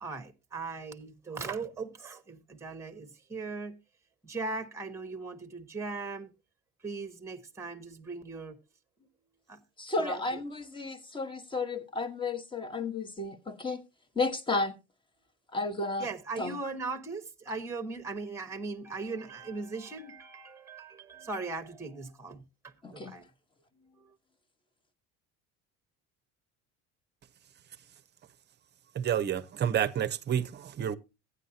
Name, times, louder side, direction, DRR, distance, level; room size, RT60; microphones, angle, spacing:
voice 1, 0.0-3.8 4.2-6.3 6.8-8.6 9.5-9.6 10.0-10.4 16.0-23.2 23.7-24.2, right 3 dB, 10° right, 1.2 m, -39 dB
voice 2, 9.8-13.8 14.1-14.8 15.5-16.1 16.4-16.6 22.8-23.1, left 3 dB, 15° left, 1.2 m, -32 dB
voice 3, 29.0-30.9, right 9 dB, 35° right, 0.7 m, -29 dB
15.0 x 9.7 x 2.8 m
cardioid pair, 140°, 31 cm